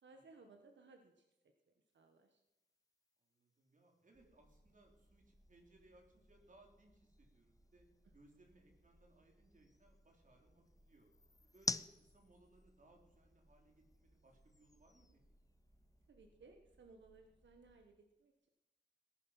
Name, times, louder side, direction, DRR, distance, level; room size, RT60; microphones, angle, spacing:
voice 1, 0.0-1.3 1.9-2.4 16.1-18.5, right 3 dB, 85° right, 4 dB, 1.4 m, -62 dB
sound 1, 1.9-16.1, left 3 dB, 20° left, 0.4 m, -52 dB
voice 2, 3.2-7.9 8.1-11.1 11.4-15.2, right 2 dB, 45° right, 2 dB, 3.3 m, -68 dB
sound 2, 4.1-17.9, equal, ahead, 2.0 m, -71 dB
18.0 x 10.5 x 5.7 m, 0.94 s
wide cardioid pair, 145°, 18 cm